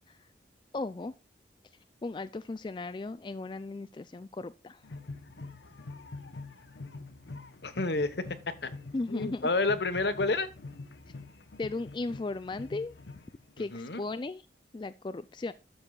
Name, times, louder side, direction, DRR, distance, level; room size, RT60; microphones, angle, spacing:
voice 1, 0.7-1.1 2.0-4.8 8.9-9.5 11.6-12.9 13.6-14.4 14.7-15.5, left 3 dB, 25° left, 12 dB, 0.3 m, -36 dB
sound 1, 4.8-13.6, left 3 dB, 90° left, 0.9 m, -45 dB
voice 2, 7.6-8.2 8.6-8.7 9.1-10.5 13.7-14.0, left 3 dB, 75° left, 11 dB, 1.1 m, -29 dB
12.5 x 6.8 x 2.4 m, 0.30 s
head